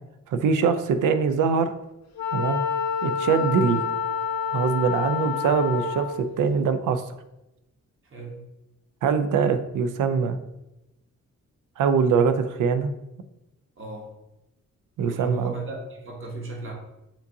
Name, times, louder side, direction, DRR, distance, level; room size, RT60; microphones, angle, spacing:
voice 1, 0.3-1.7 2.3-2.6 3.0-3.8 4.5-7.0 9.0-10.4 11.8-12.9 15.0-15.5, right 6 dB, 85° right, 9 dB, 0.5 m, -23 dB
Wind instrument woodwind instrument, 2.2-6.3, left 6 dB, 60° left, 0.7 m, -28 dB
voice 2, 13.8-14.1 15.1-16.7, right 3 dB, 45° right, 0 dB, 1.1 m, -35 dB
7.1 x 2.7 x 2.7 m, 0.93 s
wide cardioid pair, 140°, 30 cm